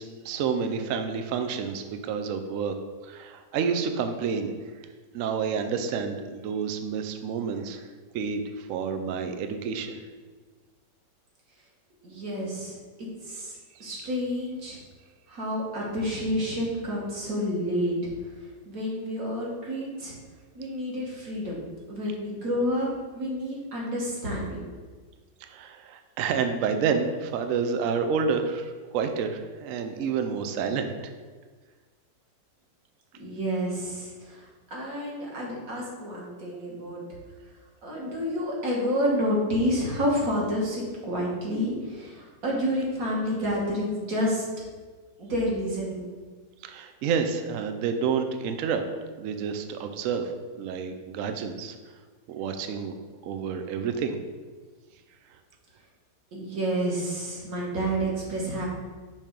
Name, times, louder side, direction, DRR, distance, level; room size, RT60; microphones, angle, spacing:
voice 1, 0.0-2.7 3.0-4.5 5.1-7.8 8.1-10.0 25.5-30.9 46.6-48.8 49.2-50.3 50.6-51.8 52.3-52.9 53.2-54.2, right 6 dB, 85° right, 7 dB, 0.7 m, -29 dB
voice 2, 12.0-12.8 13.2-14.8 15.3-18.1 18.7-20.1 20.6-21.6 21.9-22.9 23.1-24.7 33.2-37.0 37.8-44.4 45.2-46.1 56.3-58.7, equal, 55° right, -3 dB, 1.7 m, -29 dB
5.4 x 3.5 x 5.1 m, 1.4 s
omnidirectional pair, 1.9 m